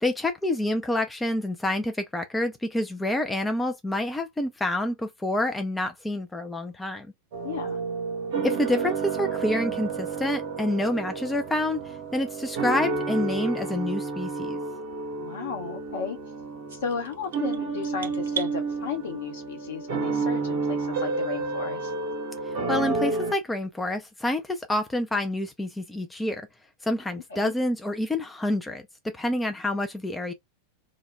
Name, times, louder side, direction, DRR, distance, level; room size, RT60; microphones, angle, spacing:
voice 1, 0.0-7.1 8.4-14.6 22.4-26.5 26.8-30.3, left 1 dB, 10° left, 0.4 m, -28 dB
sound 1, 7.3-23.3, right 4 dB, 50° right, 0.7 m, -30 dB
voice 2, 7.4-7.8 15.2-16.2 16.7-21.9 27.3-27.5, left 6 dB, 60° left, 0.9 m, -34 dB
sound 2, 16.7-18.6, right 9 dB, 65° right, 0.4 m, -37 dB
2.2 x 2.1 x 3.2 m
figure-of-eight pair, 90°, 0 cm